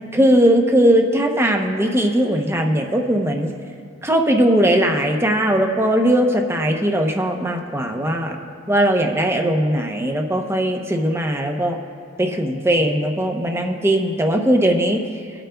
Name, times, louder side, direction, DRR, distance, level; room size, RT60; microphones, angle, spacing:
voice 1, 0.1-3.5 4.0-8.4 8.7-11.8 12.2-15.0, right 1 dB, 15° right, 3 dB, 0.7 m, -19 dB
20.5 x 8.9 x 2.3 m, 2.2 s
head